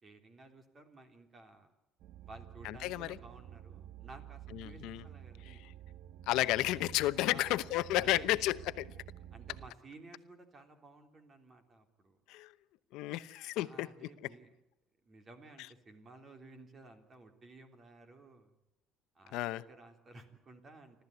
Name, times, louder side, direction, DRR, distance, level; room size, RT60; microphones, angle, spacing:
voice 1, 0.0-1.7 2.2-5.6 7.2-7.7 8.0-8.3 9.3-12.2 13.5-14.5 15.0-18.5 19.1-21.0, right 2 dB, 25° right, 3.4 m, -55 dB
sound 1, 2.0-9.7, right 11 dB, 60° right, 0.7 m, -51 dB
voice 2, 2.6-3.2 4.5-5.0 5.4-5.7 6.3-8.9 12.3-12.5 12.9-13.9 19.3-19.6, left 16 dB, 75° left, 0.9 m, -32 dB
30.0 x 13.0 x 9.5 m
cardioid pair, 135°, 0 cm